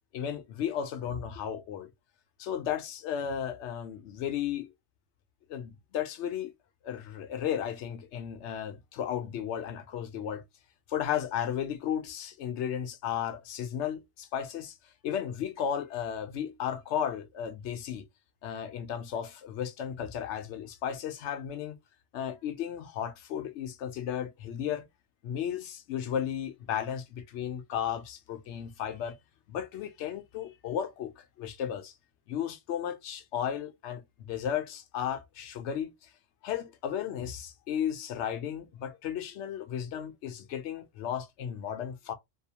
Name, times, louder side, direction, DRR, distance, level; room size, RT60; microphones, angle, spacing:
voice 1, 0.1-1.9 2.4-4.7 5.5-6.5 6.8-10.4 10.9-14.8 15.0-18.1 18.4-21.8 22.1-24.9 25.2-29.2 29.5-31.9 32.3-36.1 36.4-42.1, left 9 dB, 75° left, 0.8 m, -34 dB
2.7 x 2.0 x 2.7 m
omnidirectional pair, 1.2 m